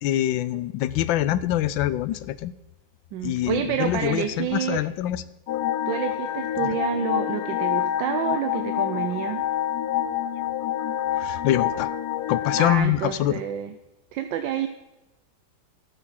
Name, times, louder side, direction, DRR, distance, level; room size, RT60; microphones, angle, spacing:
voice 1, 0.0-2.5 3.2-5.2 6.6-6.8 11.2-11.9 12.3-13.4, left 13 dB, 90° left, 16 dB, 1.3 m, -25 dB
voice 2, 3.1-4.8 5.9-9.4 12.6-13.7 14.1-14.7, right 9 dB, 80° right, 8 dB, 1.4 m, -28 dB
sound 1, 5.5-12.8, left 11 dB, 70° left, 1.0 m, -27 dB
12.5 x 7.2 x 5.7 m, 1.0 s
omnidirectional pair, 2.0 m